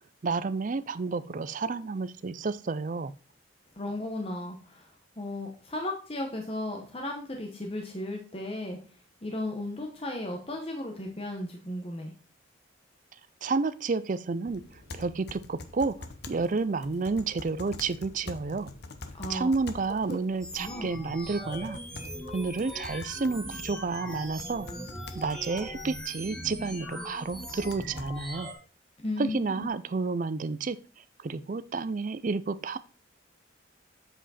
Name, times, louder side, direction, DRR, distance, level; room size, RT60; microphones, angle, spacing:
voice 1, 0.2-3.1 13.4-15.9 16.3-18.7 19.3-21.8 22.3-24.7 25.1-28.5 29.2-30.8 31.2-32.8, right 4 dB, 40° right, 14 dB, 0.4 m, -30 dB
voice 2, 3.8-4.9 5.2-8.8 9.2-12.1 19.2-19.5 20.1-20.2 20.6-20.9 29.0-29.7, left 1 dB, 30° left, 2 dB, 1.0 m, -35 dB
sound 1, 14.4-28.3, left 3 dB, 55° left, 0.8 m, -47 dB
sound 2, 20.4-28.5, equal, 5° left, 1.4 m, -40 dB
7.9 x 5.0 x 4.1 m, 0.37 s
head